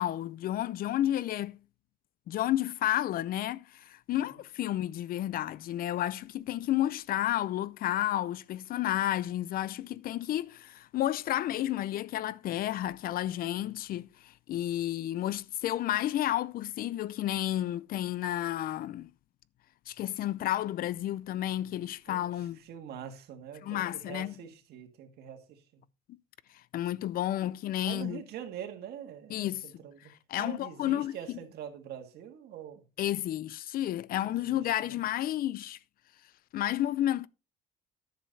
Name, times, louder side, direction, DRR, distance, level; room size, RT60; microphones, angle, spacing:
voice 1, 0.0-1.6 2.3-19.1 19.9-22.6 23.6-24.3 26.7-28.2 29.3-29.7 30.3-31.4 33.0-35.8 36.5-37.3, left 13 dB, 60° left, 0.5 m, -31 dB
voice 2, 22.1-25.8 27.8-30.1 30.4-32.8 34.2-35.0, right 9 dB, 75° right, 1.7 m, -44 dB
10.5 x 6.8 x 4.0 m
cardioid pair, 110°, 17 cm